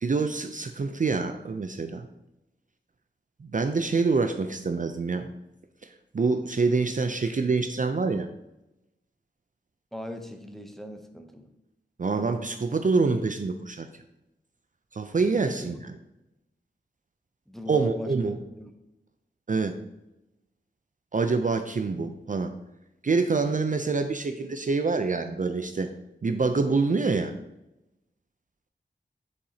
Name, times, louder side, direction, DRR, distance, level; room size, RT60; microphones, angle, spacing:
voice 1, 0.0-2.1 3.4-5.3 6.1-8.3 12.0-13.9 14.9-15.9 17.7-18.4 19.5-19.7 21.1-22.5 23.0-25.9 26.2-27.3, right 4 dB, 45° right, 7 dB, 0.4 m, -26 dB
voice 2, 9.9-11.5 15.4-15.8 17.5-18.1 18.6-18.7, left 1 dB, ahead, 5 dB, 0.7 m, -39 dB
7.1 x 4.8 x 2.7 m, 0.92 s
wide cardioid pair, 60°, 19 cm